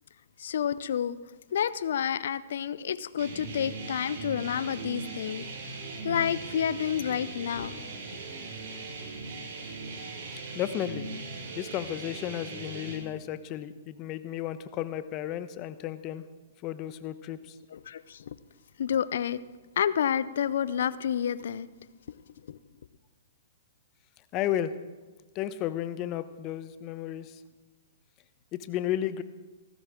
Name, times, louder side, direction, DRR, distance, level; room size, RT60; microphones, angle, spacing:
voice 1, 0.4-1.2 1.5-5.4 6.0-7.7 17.7-18.4 18.8-19.4 19.8-21.7 22.5-22.6, left 8 dB, 65° left, 18 dB, 0.6 m, -29 dB
sound 1, 3.2-13.0, right 3 dB, 55° right, 5.6 m, -39 dB
voice 2, 10.5-11.1 11.5-16.2 16.6-17.6 24.3-24.7 25.3-27.4 28.5-29.2, left 12 dB, 35° left, 13 dB, 0.9 m, -33 dB
17.5 x 15.0 x 3.7 m, 1.3 s
hypercardioid pair, 125°, 0 cm